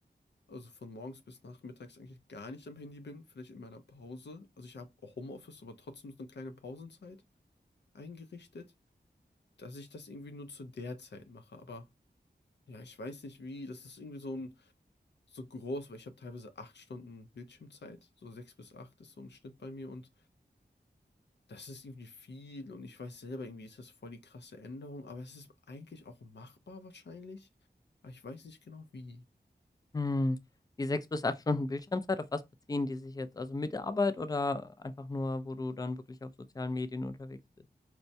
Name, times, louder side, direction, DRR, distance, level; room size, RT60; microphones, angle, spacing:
voice 1, 0.5-7.2 7.9-8.7 9.6-11.8 12.7-14.7 15.3-20.1 21.5-27.5 28.0-29.2, left 2 dB, 80° left, 0.6 m, -46 dB
voice 2, 29.9-30.4 30.8-32.4 32.7-36.3 36.6-37.4, left 2 dB, 20° left, 0.3 m, -33 dB
4.4 x 2.1 x 2.7 m
wide cardioid pair, 60°, 18 cm